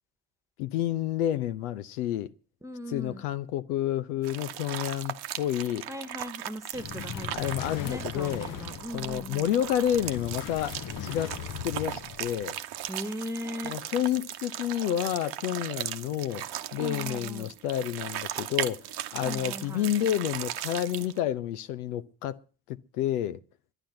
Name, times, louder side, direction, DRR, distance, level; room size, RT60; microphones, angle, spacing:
voice 1, 0.6-2.3 2.9-5.9 7.3-8.5 8.9-11.3 11.6-12.6 13.6-16.4 16.7-22.4 22.7-23.4, left 11 dB, 80° left, 0.7 m, -30 dB
voice 2, 2.6-3.2 5.9-7.5 7.8-9.5 12.9-13.8 16.8-17.5 19.2-19.9, equal, 5° right, 1.4 m, -38 dB
sound 1, 4.2-21.2, right 12 dB, 60° right, 1.0 m, -38 dB
sound 2, 6.7-12.4, left 9 dB, 45° left, 0.9 m, -39 dB
11.5 x 9.9 x 8.9 m
figure-of-eight pair, 45°, 44 cm